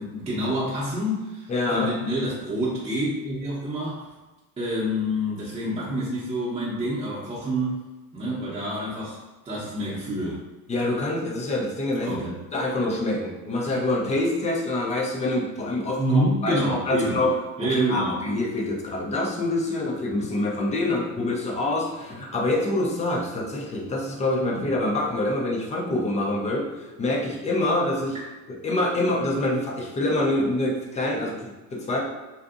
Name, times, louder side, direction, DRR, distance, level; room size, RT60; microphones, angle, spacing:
voice 1, 0.0-4.1 4.6-7.8 8.1-9.2 9.4-10.4 12.0-12.3 16.0-17.2 17.6-18.2 28.1-28.2, equal, 15° right, -7 dB, 0.7 m, -27 dB
voice 2, 1.5-1.9 10.7-12.2 12.5-28.2 28.5-32.1, left 2 dB, 15° left, -1 dB, 0.4 m, -26 dB
2.6 x 2.4 x 2.4 m, 1.1 s
hypercardioid pair, 80°, 45 cm